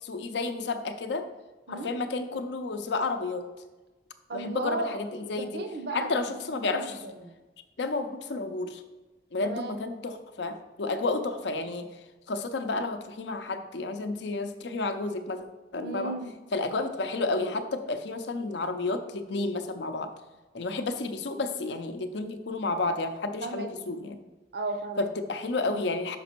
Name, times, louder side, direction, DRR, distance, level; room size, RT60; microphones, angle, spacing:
voice 1, 0.0-1.3 1.7-3.5 4.3-5.6 5.9-7.0 7.8-8.8 9.3-11.9 12.3-15.5 15.7-16.1 16.5-20.1 20.5-24.2 25.0-26.2, left 3 dB, 70° left, 8 dB, 0.5 m, -31 dB
voice 2, 4.3-5.0 5.4-6.1 6.5-7.3 9.4-9.7 15.8-16.3 23.4-23.7 24.5-25.1, right 2 dB, 60° right, 7 dB, 0.6 m, -35 dB
5.9 x 5.1 x 4.4 m, 1.2 s
head